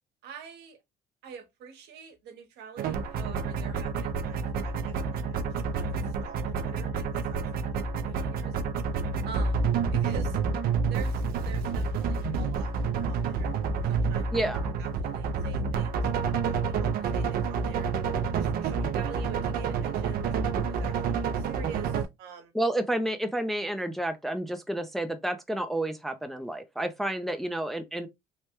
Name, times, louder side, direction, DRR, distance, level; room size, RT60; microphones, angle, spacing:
voice 1, 0.2-0.8 1.2-5.4 5.7-8.7 9.2-9.6 9.9-10.4 10.9-12.7 13.0-13.5 13.8-14.3 14.8-17.9 18.3-22.5, right 7 dB, 80° right, 1.0 m, -45 dB
sound 1, 2.8-22.1, right 5 dB, 60° right, 0.4 m, -29 dB
voice 2, 14.3-14.7 22.5-28.1, right 1 dB, ahead, 0.4 m, -30 dB
3.2 x 2.2 x 2.9 m
cardioid pair, 110°, 17 cm